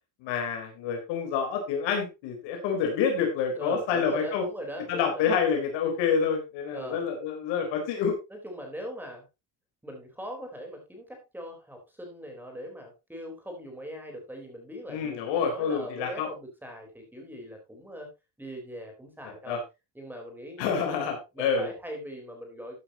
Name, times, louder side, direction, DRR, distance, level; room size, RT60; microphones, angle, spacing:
voice 1, 0.2-4.4 4.9-8.2 14.9-16.3 19.5-19.6 20.6-21.7, left 6 dB, 70° left, 3 dB, 4.0 m, -28 dB
voice 2, 3.5-5.3 6.7-7.1 8.3-9.2 9.8-18.1 18.4-19.6 19.9-21.0 21.3-22.8, equal, 5° right, 3 dB, 3.9 m, -40 dB
13.5 x 9.8 x 2.9 m, 0.25 s
cardioid pair, 160°, 44 cm